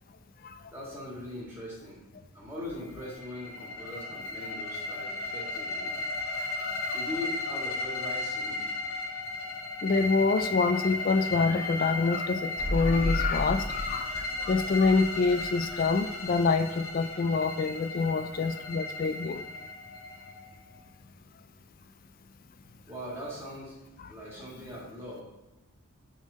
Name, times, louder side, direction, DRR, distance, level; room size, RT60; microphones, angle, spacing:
voice 1, 0.7-2.0 2.3-5.9 6.9-8.6 22.9-23.8 24.1-25.2, left 1 dB, 10° right, -6 dB, 1.8 m, -40 dB
sound 1, 3.0-20.8, left 2 dB, 70° left, 1.6 m, -35 dB
voice 2, 6.6-7.0 9.8-19.4, left 4 dB, 40° left, 11 dB, 0.3 m, -26 dB
sound 2, 12.6-16.3 16.6-16.7, equal, 30° right, 1.2 m, -34 dB
6.3 x 3.6 x 5.4 m, 1.0 s
head